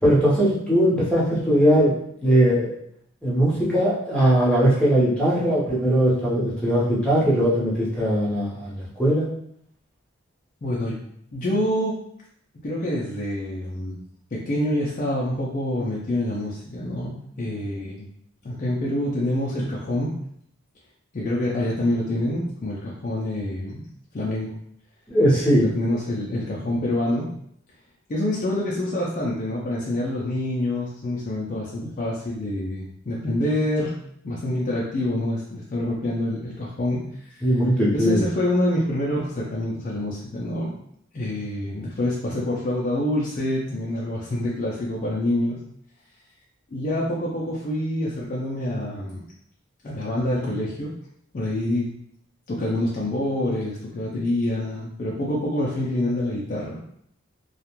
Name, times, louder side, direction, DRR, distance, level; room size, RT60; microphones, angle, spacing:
voice 1, 0.0-1.9 2.2-2.7 3.2-9.3 25.1-25.7 37.4-38.2, equal, 5° left, -7 dB, 0.8 m, -20 dB
voice 2, 10.6-11.0 11.3-12.0 12.6-14.0 14.3-18.1 18.4-20.1 21.1-23.8 24.1-24.5 25.7-27.3 28.1-33.9 34.2-37.5 37.9-40.7 41.1-45.6 46.7-49.2 49.8-50.9 51.3-51.9 52.5-56.8, left 1 dB, 40° left, -5 dB, 0.4 m, -26 dB
2.4 x 2.1 x 2.9 m, 0.69 s
head